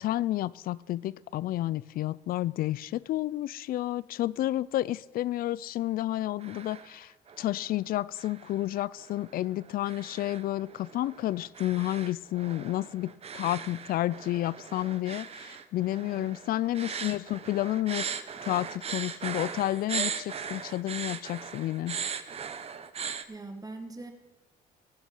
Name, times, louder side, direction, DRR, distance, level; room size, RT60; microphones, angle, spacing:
voice 1, 0.0-7.1 7.4-18.1 18.5-22.0, left 15 dB, 60° left, 21 dB, 0.4 m, -31 dB
sound 1, 6.1-7.0 7.3-7.7 8.2-23.2, right 6 dB, 35° right, 0.9 m, -39 dB
voice 2, 16.0-16.3 23.3-24.1, right 2 dB, 20° right, 5 dB, 1.8 m, -42 dB
18.0 x 7.2 x 5.4 m, 1.1 s
cardioid pair, 110°, 17 cm